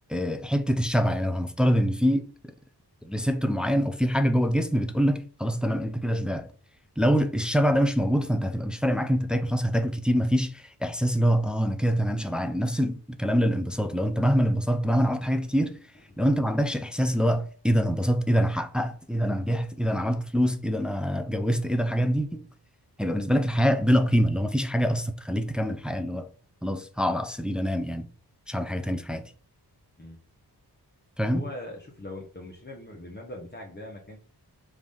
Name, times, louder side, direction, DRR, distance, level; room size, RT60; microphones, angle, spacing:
voice 1, 0.1-2.5 3.0-6.5 7.0-15.8 16.2-22.4 23.0-26.3 26.6-28.1 28.5-29.3 31.2-31.4, equal, ahead, 0.4 m, -25 dB
voice 2, 31.3-34.2, left 1 dB, 25° left, 1.0 m, -41 dB
4.9 x 2.6 x 3.6 m
wide cardioid pair, 70°, 41 cm